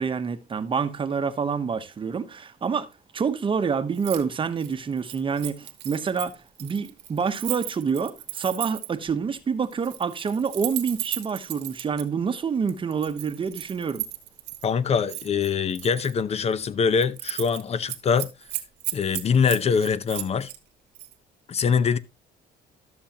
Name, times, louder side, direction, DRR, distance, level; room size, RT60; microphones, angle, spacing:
voice 1, 0.0-14.1, right 6 dB, 30° right, 0.9 m, -27 dB
Keys jangling, 3.9-4.2 4.5-9.0 9.7-12.0 12.7-14.7 15.1-16.1 16.5-16.7 17.0-17.6 17.9-20.6 20.9-21.1, right 16 dB, 90° right, 1.3 m, -35 dB
voice 2, 14.6-18.3 18.9-20.5 21.5-22.0, left 6 dB, 40° left, 0.7 m, -23 dB
12.5 x 7.0 x 2.9 m
cardioid pair, 110°, 17 cm